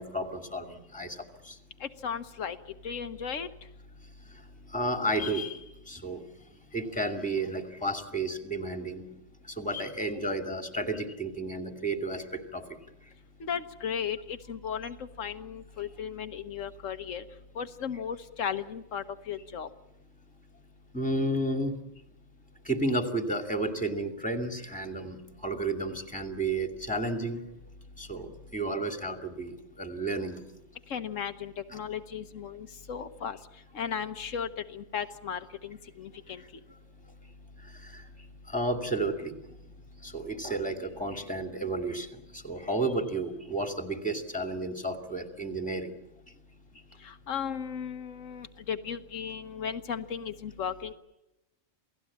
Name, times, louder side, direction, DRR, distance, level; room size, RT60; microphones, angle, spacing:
voice 1, 0.0-1.5 4.7-5.6 5.9-6.2 6.7-9.1 9.6-12.6 20.9-21.8 22.7-25.2 25.4-27.4 28.0-30.4 31.7-31.8 37.8-38.0 38.5-39.4 40.0-42.1 42.3-45.9, right 2 dB, 5° left, 6 dB, 2.5 m, -32 dB
voice 2, 1.8-2.6 2.8-3.5 13.4-17.2 17.5-19.7 30.9-33.4 33.7-36.4 47.0-50.9, left 7 dB, 85° left, 9 dB, 1.4 m, -36 dB
28.0 x 17.5 x 8.7 m, 0.94 s
omnidirectional pair, 1.3 m